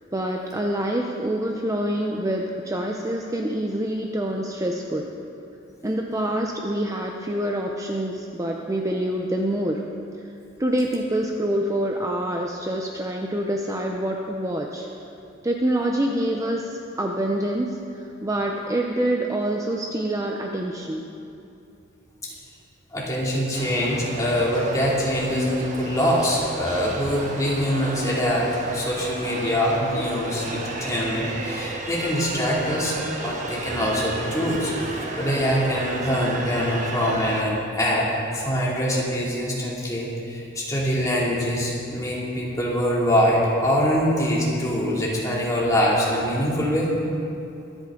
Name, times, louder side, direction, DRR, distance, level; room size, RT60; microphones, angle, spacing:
voice 1, 0.1-5.1 5.8-9.8 10.6-14.9 15.4-21.0, right 1 dB, 15° right, 1 dB, 0.7 m, -26 dB
voice 2, 22.9-32.9 33.2-38.1 38.3-46.9, equal, 15° left, -5 dB, 2.7 m, -24 dB
sound 1, 23.5-37.4, right 2 dB, 40° right, 1.4 m, -33 dB
23.5 x 9.0 x 3.8 m, 2.7 s
head